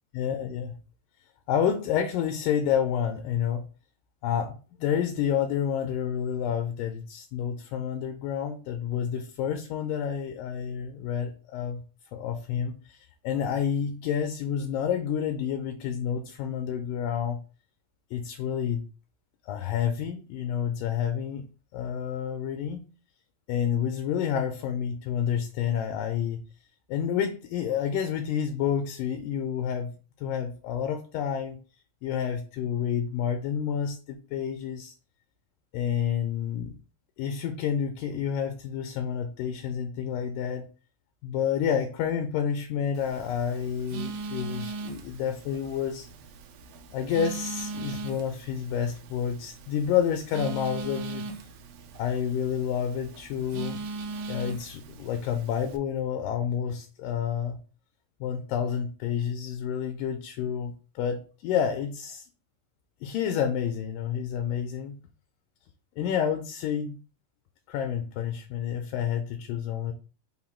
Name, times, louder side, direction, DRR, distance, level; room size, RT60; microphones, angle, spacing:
voice 1, 0.1-0.8 1.5-3.6 4.2-11.8 12.1-13.0 13.2-17.4 18.1-18.9 19.5-21.5 21.7-22.8 23.5-26.4 26.9-29.9 30.2-31.6 32.0-34.9 35.7-36.8 37.2-40.7 41.2-46.1 46.9-51.3 52.0-53.8 54.3-57.6 58.2-62.3 63.0-65.0 66.0-67.0 67.7-69.9, left 8 dB, 80° left, 5 dB, 2.0 m, -29 dB
Telephone, 42.9-55.8, right 4 dB, 85° right, 2.3 m, -39 dB
5.6 x 2.2 x 4.3 m, 0.36 s
omnidirectional pair, 4.1 m